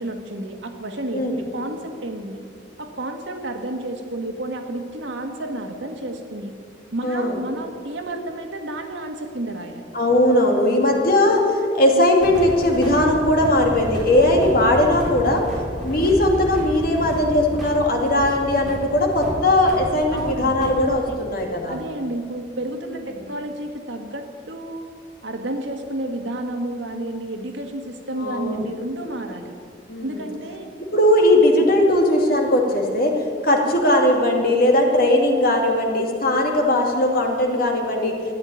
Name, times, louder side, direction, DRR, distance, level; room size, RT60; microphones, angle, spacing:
voice 1, 0.0-2.4 2.8-6.5 6.9-9.9 20.1-21.2 21.7-24.9 25.2-29.6 30.0-30.7, right 1 dB, 80° right, 4 dB, 1.9 m, -31 dB
voice 2, 7.0-7.4 9.9-15.4 15.8-21.8 23.1-23.2 28.2-28.6 29.9-30.2 30.8-38.1, left 1 dB, 50° left, 1 dB, 2.4 m, -19 dB
sound 1, 12.2-20.9, equal, ahead, 4.4 m, -31 dB
14.0 x 10.0 x 9.1 m, 2.2 s
head